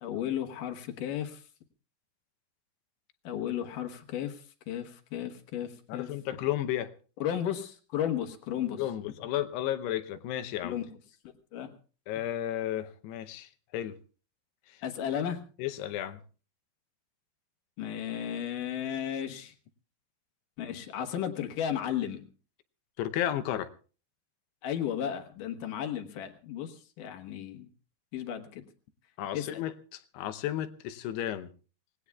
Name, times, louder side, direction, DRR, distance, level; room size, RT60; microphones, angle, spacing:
voice 1, 0.0-1.4 3.2-4.4 4.7-6.1 7.2-8.8 10.6-10.9 11.5-11.7 14.8-15.4 17.8-19.5 20.6-22.2 24.6-27.7 28.1-28.6 29.3-29.6, left 10 dB, 65° left, 5 dB, 2.5 m, -34 dB
voice 2, 5.9-6.9 8.7-10.8 12.1-13.9 14.7-14.8 15.6-16.2 23.0-23.7 29.2-31.5, left 12 dB, 80° left, 11 dB, 2.9 m, -33 dB
27.0 x 18.5 x 2.3 m, 0.38 s
omnidirectional pair, 4.8 m